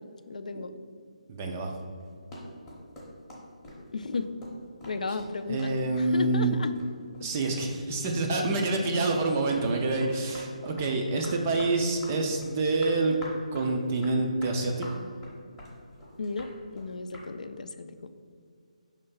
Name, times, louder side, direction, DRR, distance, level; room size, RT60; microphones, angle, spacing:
voice 1, 0.3-0.7 3.9-4.4 4.8-6.7 11.1-11.3 16.2-18.1, left 3 dB, 75° left, 10 dB, 0.5 m, -34 dB
voice 2, 1.3-1.7 5.5-6.6 7.2-13.2 13.5-15.0, right 2 dB, 15° right, 2 dB, 0.3 m, -27 dB
sound 1, 2.0-7.3 7.6-8.7 9.0-17.3, left 1 dB, 5° left, 0.8 m, -46 dB
5.6 x 3.3 x 5.5 m, 2.2 s
hypercardioid pair, 175°, 4 cm